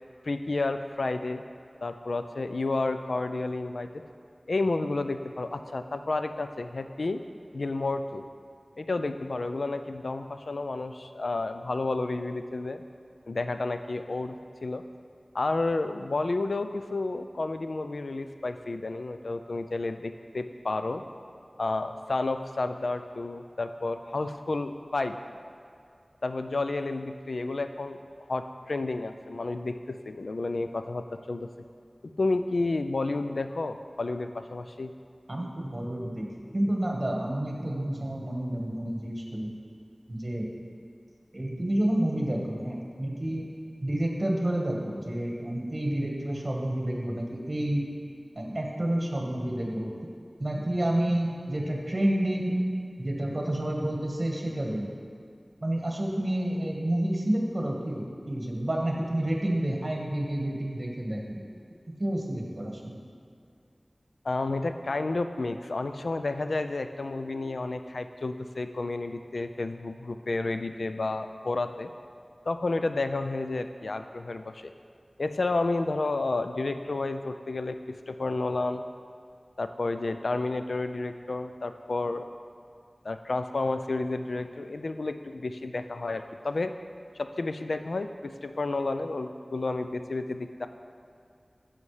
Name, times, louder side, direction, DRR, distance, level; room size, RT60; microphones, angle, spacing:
voice 1, 0.2-1.4 1.8-3.9 4.5-7.2 7.5-8.2 8.8-12.8 13.3-14.8 15.3-21.0 21.6-25.2 26.2-28.0 28.3-31.5 32.2-34.9 64.2-71.9 72.5-74.7 75.2-77.8 78.1-78.8 79.6-82.2 83.0-86.7 87.2-90.7, left 2 dB, 90° left, 8 dB, 0.4 m, -31 dB
voice 2, 35.3-39.5 40.1-40.5 41.3-43.5 43.8-47.8 48.3-49.9 50.4-52.6 53.0-54.9 55.6-61.4 62.0-63.0, right 1 dB, 45° right, -1 dB, 1.4 m, -29 dB
10.5 x 7.2 x 3.2 m, 2.3 s
wide cardioid pair, 55°, 0 cm